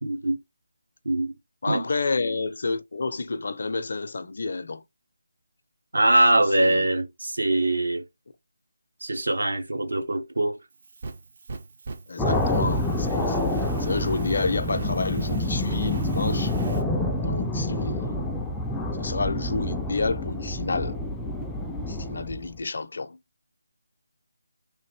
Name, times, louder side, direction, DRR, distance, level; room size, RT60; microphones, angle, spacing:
voice 1, 0.0-0.4 1.0-1.3 1.7-1.9 5.9-8.0 9.0-10.6, right 1 dB, 75° right, 1.1 m, -23 dB
voice 2, 1.6-4.8 6.3-6.9 12.1-13.4 13.8-16.5 17.2-18.2 19.0-21.0 21.9-23.2, left 3 dB, 55° left, 0.5 m, -30 dB
Fire, 10.7-16.8, right 3 dB, 45° right, 0.6 m, -39 dB
sound 1, 12.2-22.6, left 1 dB, 5° left, 0.4 m, -27 dB
3.3 x 2.6 x 3.3 m
figure-of-eight pair, 160°, 0 cm